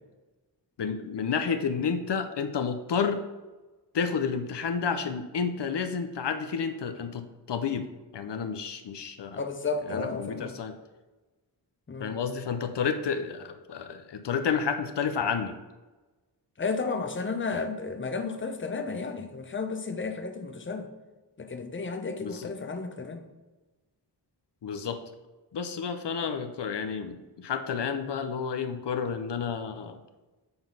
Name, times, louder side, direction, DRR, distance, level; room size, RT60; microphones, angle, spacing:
voice 1, 0.8-3.2 3.9-7.9 8.1-9.4 9.9-10.7 12.0-15.6 17.5-17.6 22.2-22.5 24.6-25.0 25.5-30.0, left 6 dB, 80° left, 8 dB, 0.6 m, -30 dB
voice 2, 9.4-10.5 11.9-12.1 16.6-20.9 21.4-23.3, left 4 dB, 30° left, 7 dB, 0.7 m, -33 dB
6.9 x 3.9 x 5.4 m, 1.2 s
wide cardioid pair, 75°, 41 cm